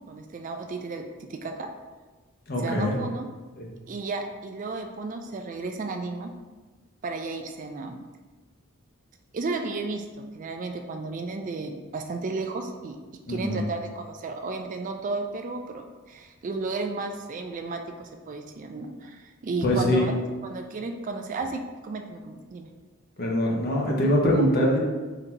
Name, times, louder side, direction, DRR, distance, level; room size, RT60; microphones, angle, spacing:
voice 1, 0.1-1.7 2.6-3.3 3.9-6.3 7.0-8.0 9.3-13.0 13.3-22.7, right 3 dB, 40° right, 5 dB, 0.3 m, -33 dB
voice 2, 2.5-2.9 3.6-3.7 13.3-13.6 19.6-20.1 23.2-24.8, equal, 45° left, -2 dB, 0.9 m, -23 dB
3.9 x 2.8 x 4.4 m, 1.3 s
head